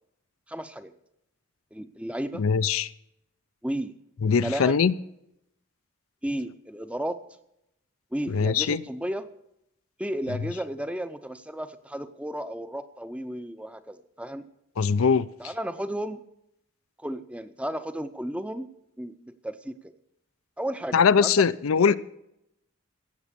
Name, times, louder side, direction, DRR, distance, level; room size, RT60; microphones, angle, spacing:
voice 1, 0.5-0.9 1.7-2.4 3.6-3.9 4.3-4.8 6.2-7.2 8.1-9.3 10.0-14.5 15.4-16.2 17.0-18.7 19.0-19.9 20.6-21.3 21.9-22.0, right 1 dB, 5° right, 0.6 m, -33 dB
voice 2, 2.4-2.9 4.2-4.9 8.3-8.8 14.8-15.3 20.9-22.0, left 6 dB, 90° left, 0.5 m, -21 dB
16.0 x 7.4 x 6.8 m
head